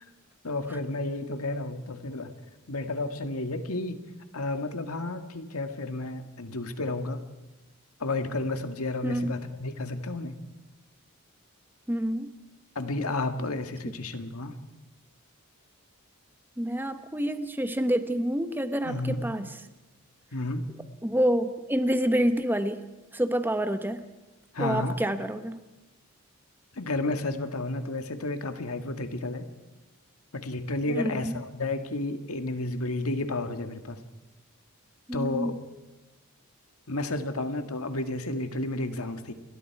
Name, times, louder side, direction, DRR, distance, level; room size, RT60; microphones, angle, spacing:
voice 1, 0.4-2.3 2.7-4.0 4.3-7.2 8.0-10.4 12.8-14.5 18.8-19.3 20.3-20.7 24.5-25.0 26.8-29.5 30.3-34.0 35.1-35.5 36.9-39.3, left 2 dB, 85° left, 7 dB, 1.9 m, -31 dB
voice 2, 11.9-12.3 16.6-19.6 21.0-22.8 23.1-24.0 24.6-25.6 30.9-31.4 35.1-35.6, equal, 10° right, 9 dB, 1.1 m, -28 dB
29.0 x 22.0 x 4.8 m, 1.1 s
head